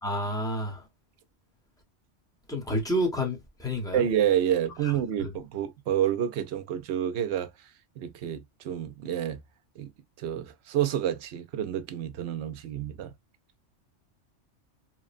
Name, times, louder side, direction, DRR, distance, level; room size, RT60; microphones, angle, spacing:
voice 1, 0.0-0.8 2.5-4.0 4.8-4.9 5.2-5.3, equal, 5° left, 0.7 m, -29 dB
voice 2, 3.9-7.5 8.0-9.4 9.8-9.9 10.2-13.1, right 10 dB, 70° right, 0.8 m, -29 dB
3.0 x 2.1 x 2.4 m
omnidirectional pair, 1.3 m